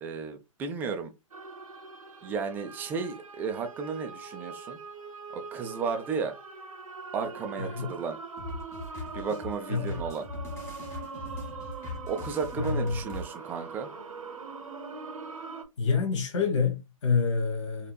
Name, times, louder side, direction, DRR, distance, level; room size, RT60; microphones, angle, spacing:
voice 1, 0.0-1.1 2.2-4.8 5.3-6.4 7.1-8.2 9.1-10.2 12.1-13.9, right 5 dB, 10° right, 0.4 m, -33 dB
sound 1, 1.3-15.6, right 4 dB, 80° right, 0.8 m, -42 dB
voice 2, 7.6-7.9 9.7-10.0 12.6-13.0 15.8-17.9, left 5 dB, 60° left, 1.5 m, -27 dB
sound 2, 8.4-13.2, left 2 dB, 15° left, 0.9 m, -40 dB
4.1 x 2.9 x 2.2 m
figure-of-eight pair, 130°, 18 cm